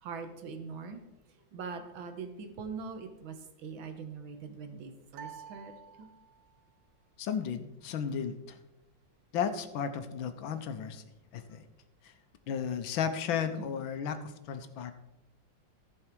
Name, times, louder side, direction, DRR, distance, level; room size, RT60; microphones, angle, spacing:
voice 1, 0.0-1.0 1.5-3.4 3.6-6.1 13.6-13.7, right 5 dB, 90° right, 7 dB, 1.8 m, -42 dB
sound 1, 5.1-6.6, right 8 dB, 60° right, 1.4 m, -49 dB
voice 2, 7.2-8.6 9.3-11.0 11.3-11.7 12.5-14.9, left 7 dB, 90° left, 9 dB, 1.6 m, -34 dB
14.5 x 5.5 x 4.6 m, 0.96 s
omnidirectional pair, 2.1 m